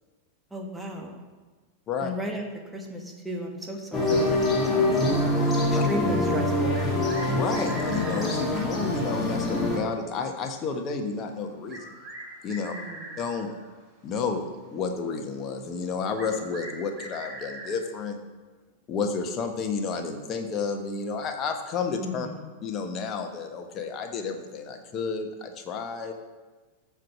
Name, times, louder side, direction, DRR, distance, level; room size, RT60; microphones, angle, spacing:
voice 1, 0.5-1.2 2.0-4.9 5.7-6.9 12.7-13.2 22.0-22.5, equal, 5° right, 1 dB, 1.6 m, -35 dB
sound 1, 3.9-9.8, left 1 dB, 15° left, 2.2 m, -25 dB
sound 2, 6.7-8.3 10.1-10.2 11.7-13.6 16.1-17.8, right 1 dB, 25° right, 3.2 m, -42 dB
voice 2, 7.3-11.9 12.4-12.7 13.2-13.5 14.0-18.2 18.9-22.3 22.6-26.1, left 5 dB, 30° left, 4 dB, 1.2 m, -31 dB
14.0 x 4.8 x 5.9 m, 1.3 s
figure-of-eight pair, 90°, 0 cm